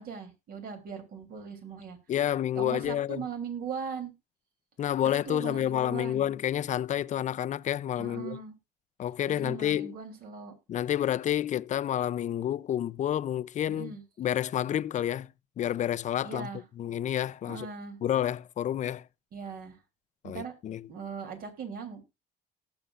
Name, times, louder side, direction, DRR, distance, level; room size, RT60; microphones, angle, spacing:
voice 1, 0.0-2.0 2.6-4.1 5.3-6.3 8.0-8.5 9.3-10.5 13.7-14.0 16.2-16.6 17.5-18.0 19.3-19.8 20.2-20.5 20.9-22.1, right 6 dB, 60° right, 3.4 m, -39 dB
voice 2, 2.1-3.2 4.8-8.4 9.0-9.9 10.7-13.9 14.2-15.3 15.6-16.5 16.8-17.7 18.0-19.0 20.2-20.9, left 11 dB, 45° left, 0.5 m, -29 dB
18.5 x 7.0 x 2.5 m
cardioid pair, 110°, 17 cm